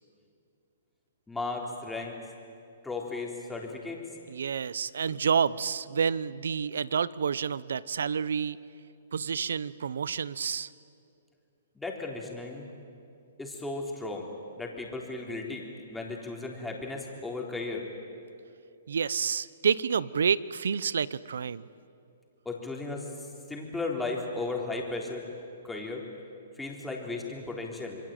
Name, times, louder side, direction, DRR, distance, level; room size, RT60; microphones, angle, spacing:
voice 1, 1.3-2.2 2.8-4.0 11.8-12.7 13.4-14.3 14.6-15.6 15.9-17.8 22.5-23.1 23.5-25.2 25.6-26.0 26.6-28.0, left 3 dB, 5° left, -1 dB, 3.8 m, -35 dB
voice 2, 4.3-8.6 9.1-10.7 18.9-21.7, right 6 dB, 80° right, 19 dB, 0.8 m, -29 dB
27.0 x 22.5 x 9.1 m, 2.5 s
hypercardioid pair, 145°, 0 cm